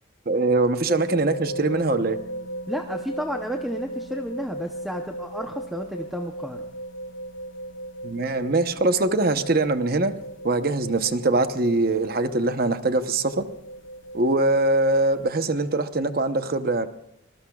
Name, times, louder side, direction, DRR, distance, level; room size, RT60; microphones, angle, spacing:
voice 1, 0.3-2.2 8.0-10.1 10.4-13.4 14.1-16.9, right 2 dB, 45° right, 9 dB, 0.9 m, -22 dB
sound 1, 0.9-15.2, right 1 dB, 65° left, 0.7 m, -37 dB
voice 2, 2.7-6.7, equal, ahead, 3 dB, 0.7 m, -32 dB
24.5 x 20.5 x 2.4 m, 0.79 s
head